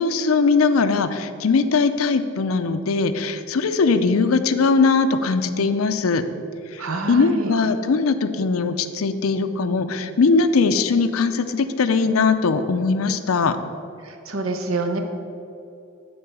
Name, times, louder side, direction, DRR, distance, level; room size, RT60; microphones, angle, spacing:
voice 1, 0.0-6.2 6.7-6.8 7.1-13.6, left 4 dB, 90° left, 10 dB, 0.5 m, -20 dB
voice 2, 6.8-7.5 14.0-15.0, right 3 dB, 85° right, 5 dB, 0.9 m, -27 dB
8.6 x 4.4 x 6.9 m, 2.6 s
head